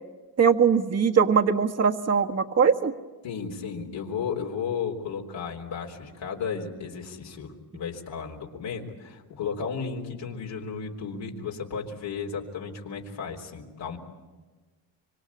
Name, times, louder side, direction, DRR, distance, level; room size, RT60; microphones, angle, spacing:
voice 1, 0.4-2.9, right 6 dB, 35° right, 5 dB, 1.6 m, -21 dB
voice 2, 3.2-14.0, left 6 dB, 75° left, 0 dB, 3.8 m, -34 dB
25.5 x 25.0 x 8.5 m, 1.3 s
cardioid pair, 100°, 44 cm